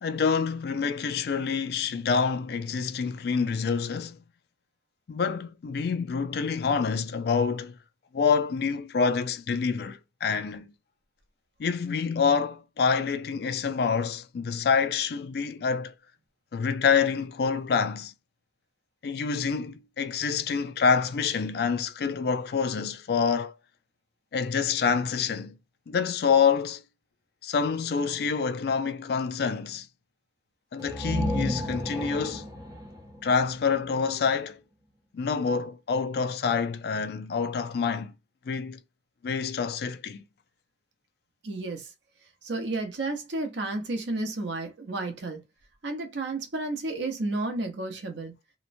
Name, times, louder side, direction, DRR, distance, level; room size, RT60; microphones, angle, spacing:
voice 1, 0.0-4.2 5.1-7.8 8.1-10.7 11.6-15.9 16.5-18.1 19.0-23.5 24.3-25.6 25.9-26.8 27.4-29.9 30.7-32.5 33.2-34.6 35.1-38.1 38.5-38.8 39.2-40.2, left 5 dB, 60° left, 0.3 m, -27 dB
sound 1, 30.8-34.5, equal, 20° right, 0.7 m, -33 dB
voice 2, 41.4-41.9 42.4-45.4 45.8-48.3, right 2 dB, 80° right, 0.7 m, -32 dB
2.9 x 2.1 x 2.5 m
head